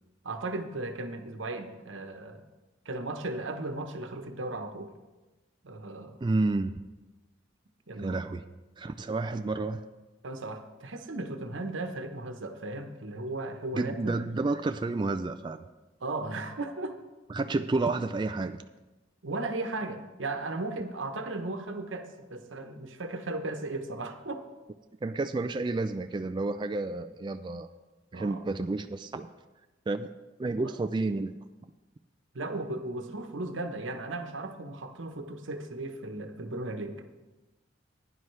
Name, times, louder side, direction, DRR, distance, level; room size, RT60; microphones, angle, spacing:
voice 1, 0.2-2.4 2.8-4.9 5.6-6.2 7.9-8.2 10.2-14.2 16.0-17.0 19.2-24.4 28.1-28.4 32.3-37.1, right 2 dB, 80° right, 6 dB, 1.0 m, -36 dB
voice 2, 6.2-6.7 8.0-8.4 8.8-9.8 13.7-15.6 17.3-18.6 25.0-27.7 28.1-29.3 29.9-30.1 30.4-31.3, right 3 dB, 25° right, 8 dB, 0.3 m, -30 dB
15.5 x 9.9 x 3.3 m, 1.1 s
head